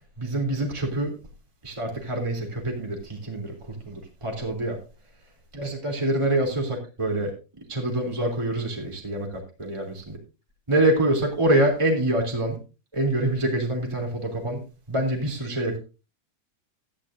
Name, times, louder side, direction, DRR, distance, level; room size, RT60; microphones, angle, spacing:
voice 1, 0.2-1.1 1.6-4.8 5.5-7.3 7.7-9.3 9.6-10.2 10.7-12.6 12.9-14.6 14.9-15.8, right 1 dB, 10° right, 1 dB, 2.9 m, -25 dB
15.0 x 11.5 x 2.7 m, 0.31 s
omnidirectional pair, 3.7 m